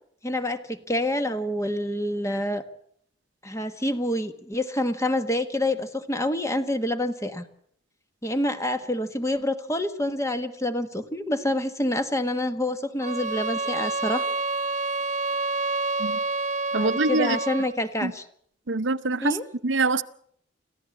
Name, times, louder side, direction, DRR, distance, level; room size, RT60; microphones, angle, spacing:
voice 1, 0.2-2.6 3.4-7.5 8.2-14.3 16.7-18.3 19.2-19.4, left 1 dB, 15° left, 1.4 m, -27 dB
sound 1, 13.0-17.8, right 3 dB, 40° right, 0.9 m, -28 dB
voice 2, 16.7-17.4 18.0-18.1 18.7-19.4 19.6-20.0, right 3 dB, 75° right, 0.9 m, -24 dB
26.0 x 15.0 x 8.4 m
head